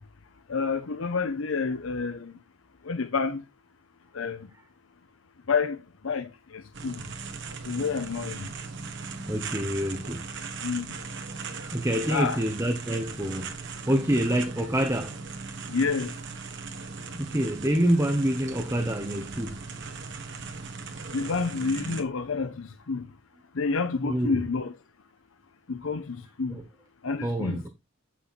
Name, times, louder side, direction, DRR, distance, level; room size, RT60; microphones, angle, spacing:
voice 1, 0.5-2.3 2.9-3.4 4.1-4.5 5.5-7.0 7.7-8.5 10.6-10.9 12.1-12.4 15.7-16.1 21.1-23.1 23.6-24.7 25.7-26.6 27.0-27.6, left 4 dB, 75° left, 0.7 m, -29 dB
sound 1, 6.7-22.0, right 4 dB, 60° right, 1.3 m, -38 dB
voice 2, 9.3-10.2 11.6-15.2 17.1-19.7 24.0-24.4 26.5-26.6 27.2-27.7, equal, 15° right, 0.9 m, -27 dB
7.9 x 6.1 x 4.2 m
head